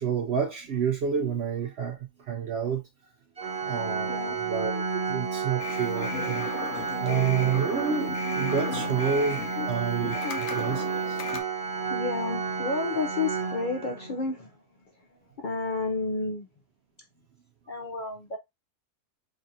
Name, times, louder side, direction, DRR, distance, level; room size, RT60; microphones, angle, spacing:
voice 1, 0.0-2.8 3.7-6.5 7.0-9.4 9.7-10.2 10.5-11.2, right 7 dB, 80° right, 0.5 m, -29 dB
Organ, 3.4-14.2, right 5 dB, 30° right, 0.8 m, -31 dB
sound 1, 5.6-11.4, left 5 dB, 60° left, 0.8 m, -36 dB
voice 2, 11.6-14.5 15.4-16.5 17.7-18.4, left 3 dB, 85° left, 0.4 m, -31 dB
5.2 x 2.5 x 2.7 m
omnidirectional pair, 1.7 m